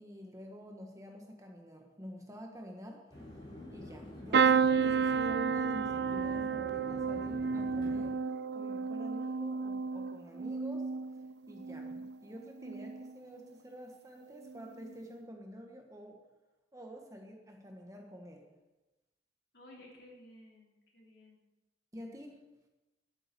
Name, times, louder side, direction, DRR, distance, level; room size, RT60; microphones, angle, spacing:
voice 1, 0.0-3.1 3.7-8.2 8.5-10.9 11.5-16.2 16.7-18.5 21.9-22.5, equal, 15° right, 2 dB, 1.4 m, -48 dB
sound 1, 3.1-8.1, left 1 dB, 25° left, 3.7 m, -47 dB
sound 2, 4.3-12.2 12.6-13.2 14.4-14.6 14.8-14.9, right 6 dB, 60° right, 0.4 m, -31 dB
voice 2, 19.5-21.4, left 1 dB, 60° left, -3 dB, 3.7 m, -55 dB
11.0 x 8.9 x 6.9 m, 1.1 s
head